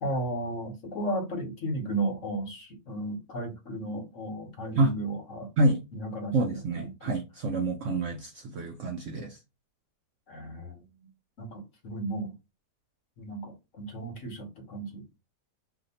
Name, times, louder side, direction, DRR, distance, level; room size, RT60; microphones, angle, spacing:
voice 1, 0.0-5.5 5.9-7.2 10.3-10.8 11.4-12.3 13.2-15.2, right 1 dB, 55° left, 1.1 m, -34 dB
voice 2, 6.3-9.4, right 2 dB, 75° right, 0.7 m, -27 dB
2.7 x 2.6 x 3.9 m
omnidirectional pair, 1.8 m